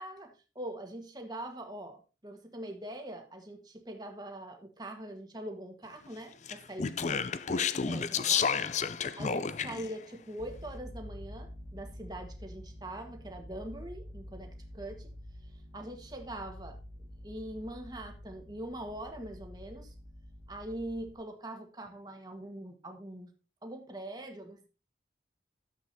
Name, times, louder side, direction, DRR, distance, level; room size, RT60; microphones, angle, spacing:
voice 1, 0.0-7.2 7.5-8.5 9.2-15.1 15.7-16.8 17.2-19.9 20.5-23.3 23.6-24.7, right 1 dB, 20° right, 4 dB, 1.5 m, -43 dB
Speech, 6.5-9.9, left 6 dB, 40° left, 0.5 m, -31 dB
sound 1, 10.4-21.2, left 1 dB, 20° left, 1.7 m, -48 dB
12.5 x 7.8 x 2.8 m, 0.32 s
head